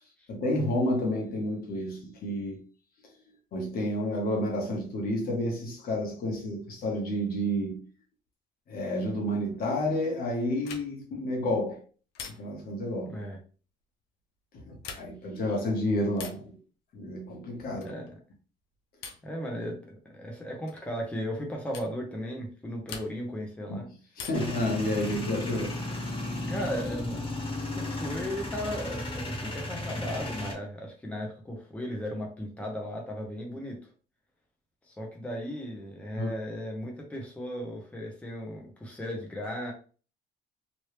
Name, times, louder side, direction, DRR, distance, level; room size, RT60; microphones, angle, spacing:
voice 1, 0.3-2.6 3.5-7.8 8.7-11.8 12.4-13.2 14.5-16.6 16.9-17.9 23.7-23.8 24.2-25.8 36.1-36.3, left 1 dB, 65° left, 1.4 m, -30 dB
sound 1, 10.6-11.1 12.1-12.7 14.7-15.3 16.1-16.5 17.8-18.1 19.0-19.4 20.7-20.9 21.7-22.0 22.9-23.4 24.1-24.6 26.1-26.8, left 6 dB, 90° left, 0.7 m, -44 dB
voice 2, 13.0-13.4 17.8-18.2 19.2-23.9 26.5-27.2 27.8-33.8 34.9-39.7, equal, 5° left, 0.9 m, -36 dB
Male speech man speaking / Vehicle / Engine starting, 24.3-30.5, left 2 dB, 30° left, 1.6 m, -34 dB
3.1 x 2.7 x 3.3 m
cardioid pair, 110°, 17 cm